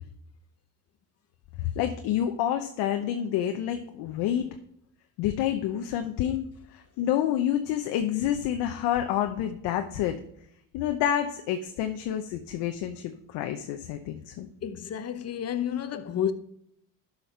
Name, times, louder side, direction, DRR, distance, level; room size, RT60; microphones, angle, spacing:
voice 1, 1.6-4.5 5.2-6.5 6.7-10.2 10.7-14.5, left 10 dB, 70° left, 0.9 m, -28 dB
voice 2, 14.6-16.3, left 9 dB, 35° left, 0.9 m, -30 dB
11.5 x 5.6 x 4.5 m
supercardioid pair, 85°, 41 cm